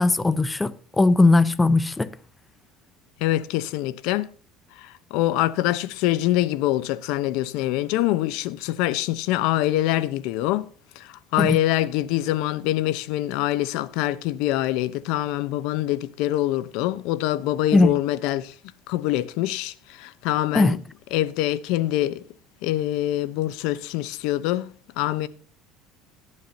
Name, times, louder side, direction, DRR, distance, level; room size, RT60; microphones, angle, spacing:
voice 1, 0.0-2.1 11.4-11.6 17.7-17.9 20.5-20.8, left 2 dB, 15° left, 0.8 m, -19 dB
voice 2, 3.2-4.3 4.8-10.7 11.0-18.5 18.9-20.8 21.1-22.2 22.6-24.7 25.0-25.3, left 15 dB, 70° left, 0.8 m, -24 dB
17.0 x 11.0 x 2.8 m
supercardioid pair, 120°, 0 cm